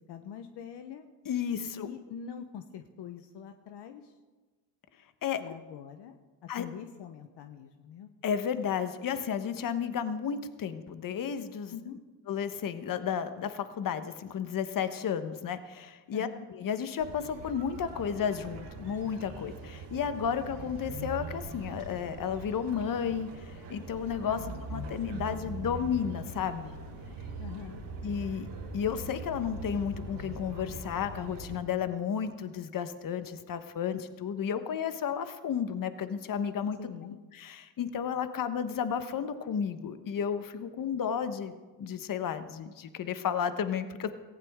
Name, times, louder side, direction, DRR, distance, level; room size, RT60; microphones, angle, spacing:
voice 1, 0.1-1.1 1.7-4.1 5.4-6.2 6.6-8.1 11.7-12.0 16.1-16.5 24.4-24.6 27.4-27.8 36.8-37.2, left 8 dB, 60° left, 7 dB, 1.1 m, -44 dB
voice 2, 1.2-1.9 5.2-5.4 6.5-6.7 8.2-11.7 12.3-24.4 24.7-26.7 28.0-28.5 28.7-36.8 37.3-44.1, left 7 dB, 45° left, 10 dB, 1.2 m, -32 dB
sound 1, 17.0-31.6, right 3 dB, 65° right, 3.6 m, -42 dB
18.0 x 15.5 x 3.7 m, 1.3 s
cardioid pair, 95°, 47 cm